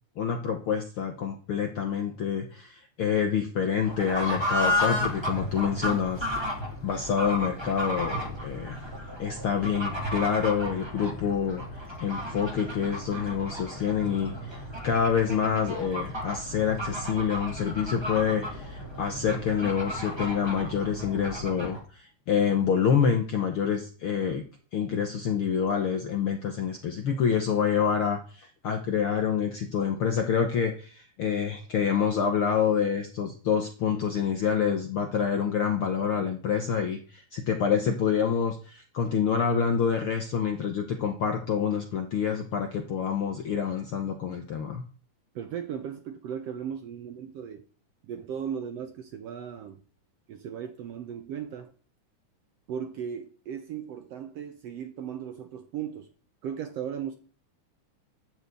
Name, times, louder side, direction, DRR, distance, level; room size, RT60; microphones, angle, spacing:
voice 1, 0.2-6.5 6.8-8.8 9.2-24.4 24.7-44.8, left 7 dB, 70° left, 1.3 m, -27 dB
Fowl / Bird, 3.8-21.8, equal, 10° right, 1.3 m, -33 dB
voice 2, 45.3-47.6 48.0-49.8 50.3-51.7 52.7-56.1 56.4-57.2, right 8 dB, 70° right, 1.6 m, -36 dB
11.5 x 4.6 x 8.3 m
omnidirectional pair, 3.7 m